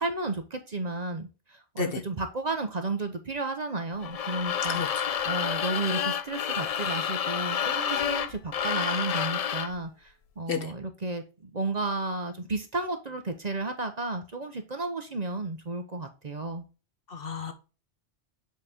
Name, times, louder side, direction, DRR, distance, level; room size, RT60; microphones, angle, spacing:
voice 1, 0.0-16.6, right 2 dB, 40° right, 0.9 m, -33 dB
sound 1, 4.0-9.8, left 8 dB, 75° left, 0.3 m, -29 dB
voice 2, 4.7-5.1 10.5-10.7 17.1-17.5, left 4 dB, 55° left, 1.1 m, -32 dB
7.4 x 4.2 x 3.5 m
omnidirectional pair, 1.2 m